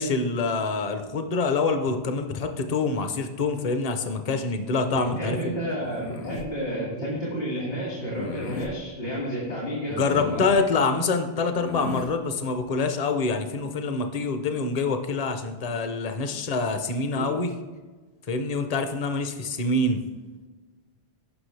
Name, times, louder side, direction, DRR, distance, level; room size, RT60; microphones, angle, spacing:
voice 1, 0.0-5.6 9.9-17.5 18.3-20.0, left 3 dB, 40° left, 7 dB, 0.8 m, -26 dB
voice 2, 5.1-10.5 16.3-16.4 17.1-17.3, equal, 65° left, -6 dB, 2.8 m, -31 dB
sound 1, 5.8-6.5 8.1-8.7 9.9-10.6 11.5-12.1, left 5 dB, 80° left, 1.1 m, -36 dB
16.0 x 6.0 x 3.3 m, 1.3 s
omnidirectional pair, 1.1 m